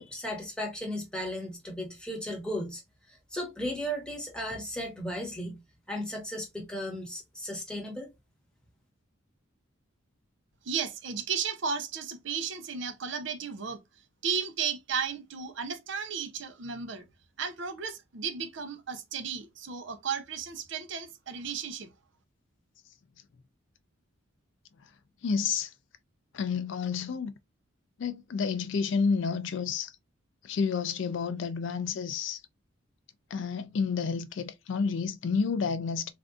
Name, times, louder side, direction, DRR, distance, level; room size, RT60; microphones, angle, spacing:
voice 1, 0.0-2.8 3.1-5.6 5.9-8.1, equal, 5° left, 1.1 m, -35 dB
voice 2, 10.6-13.8 14.2-17.1 17.4-21.9, right 6 dB, 60° right, 0.6 m, -34 dB
voice 3, 25.2-25.7 26.3-27.3 28.0-29.9 30.4-32.4 33.3-36.1, left 5 dB, 60° left, 0.3 m, -30 dB
3.5 x 2.5 x 2.4 m
head